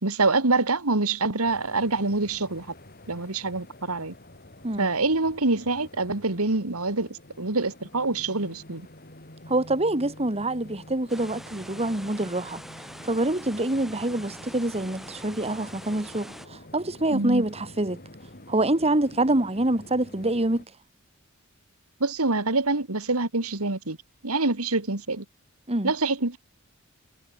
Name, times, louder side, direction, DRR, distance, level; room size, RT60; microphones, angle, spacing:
voice 1, 0.0-2.7 3.1-4.1 4.8-8.9 17.1-17.4 22.0-24.0 24.2-25.2 25.8-26.4, right 3 dB, 80° right, 2.4 m, -25 dB
sound 1, 1.4-20.7, left 1 dB, 45° left, 5.2 m, -48 dB
voice 2, 9.5-12.6 13.0-18.0 18.5-20.6 25.7-25.9, right 1 dB, 30° right, 2.1 m, -26 dB
sound 2, 11.1-16.5, equal, ahead, 6.0 m, -44 dB
head